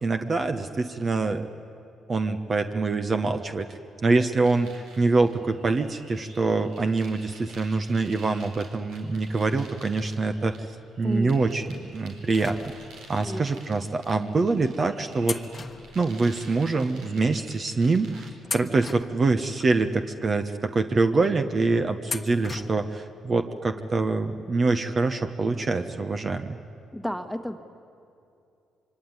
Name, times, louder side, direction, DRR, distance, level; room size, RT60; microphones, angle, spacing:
voice 1, 0.0-1.5 2.1-10.6 11.0-12.6 13.1-15.4 15.9-26.6, right 3 dB, 35° right, 7 dB, 1.2 m, -25 dB
sound 1, 4.4-18.3, right 3 dB, 85° right, 4.5 m, -50 dB
voice 2, 11.0-11.5 13.2-13.9 26.9-27.6, equal, ahead, 8 dB, 1.7 m, -33 dB
sound 2, 12.3-13.2 14.0-14.1 15.2-16.7 17.0-17.1 17.8-18.0 18.4-19.7 20.3-20.4 22.0-23.0 23.3-23.4 24.6-24.7 25.0-25.1, left 4 dB, 30° left, 1.2 m, -38 dB
25.5 x 24.5 x 9.7 m, 2.6 s
cardioid pair, 90°, 0 cm